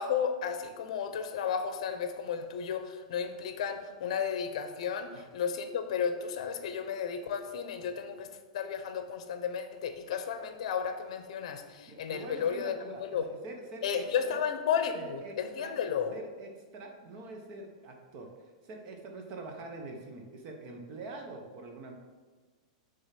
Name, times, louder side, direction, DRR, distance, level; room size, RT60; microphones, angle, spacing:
voice 1, 0.0-8.3 8.5-12.7 13.0-13.3 13.8-16.1, left 7 dB, 60° left, 8 dB, 0.8 m, -33 dB
voice 2, 11.9-14.4 14.9-15.8 16.1-18.3 18.6-21.9, right 3 dB, 35° right, 2 dB, 0.9 m, -44 dB
6.6 x 3.5 x 5.8 m, 1.4 s
supercardioid pair, 165°, 4 cm